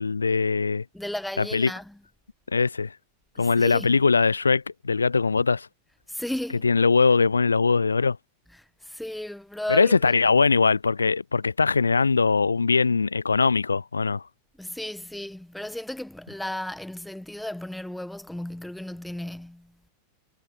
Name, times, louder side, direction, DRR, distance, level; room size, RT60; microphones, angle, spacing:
voice 1, 0.0-0.8 1.4-1.7 2.5-2.9 3.4-5.7 6.6-8.2 9.7-14.2, left 4 dB, 75° left, 2.9 m, -21 dB
voice 2, 0.9-2.0 3.4-4.0 6.1-6.7 8.8-10.2 14.6-19.8, left 1 dB, 5° left, 5.2 m, -34 dB
figure-of-eight pair, 90°, 0 cm